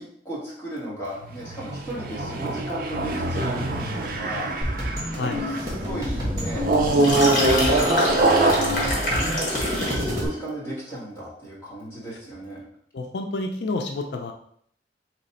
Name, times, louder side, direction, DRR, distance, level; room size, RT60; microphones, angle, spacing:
voice 1, 0.0-6.7 7.5-8.1 9.0-9.5 9.9-12.6, right 1 dB, 15° left, -8 dB, 1.4 m, -36 dB
sound 1, 1.2-5.8 6.6-10.2, right 2 dB, 55° right, 0.5 m, -24 dB
sound 2, 4.6-10.3, left 1 dB, 20° right, 1.2 m, -29 dB
sound 3, 6.8-10.1, left 1 dB, 45° left, 1.4 m, -27 dB
voice 2, 12.9-14.3, left 2 dB, 75° left, 4 dB, 0.4 m, -29 dB
3.3 x 3.0 x 4.1 m, 0.65 s
head